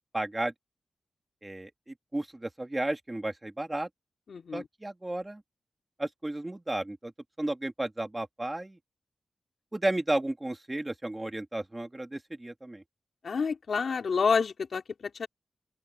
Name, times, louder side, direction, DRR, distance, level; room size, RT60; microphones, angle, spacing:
voice 1, 0.1-0.5 1.4-3.9 4.5-5.4 6.0-7.1 7.4-8.8 9.7-12.8, right 1 dB, 15° right, 2.6 m, -33 dB
voice 2, 4.3-4.6 13.2-14.8 15.2-15.3, left 5 dB, 65° left, 3.1 m, -28 dB
open air
wide cardioid pair, 125°, 0 cm